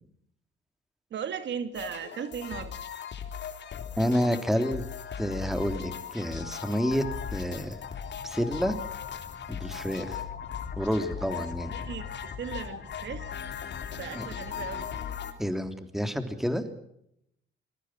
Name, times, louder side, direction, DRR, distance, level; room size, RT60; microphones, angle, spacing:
voice 1, 1.1-2.7 11.7-13.4 13.9-14.9, right 7 dB, 65° right, 9 dB, 2.6 m, -37 dB
sound 1, 1.7-15.3, left 8 dB, 65° left, 3.5 m, -38 dB
voice 2, 4.0-4.8 5.2-7.0 7.3-7.8 8.2-8.7 9.5-10.2 10.8-11.7 14.2-14.3 15.4-16.6, equal, ahead, 7 dB, 3.3 m, -29 dB
sound 2, 7.3-15.0, left 4 dB, 35° left, 4.6 m, -48 dB
26.5 x 22.0 x 6.1 m, 0.77 s
cardioid pair, 90°, 20 cm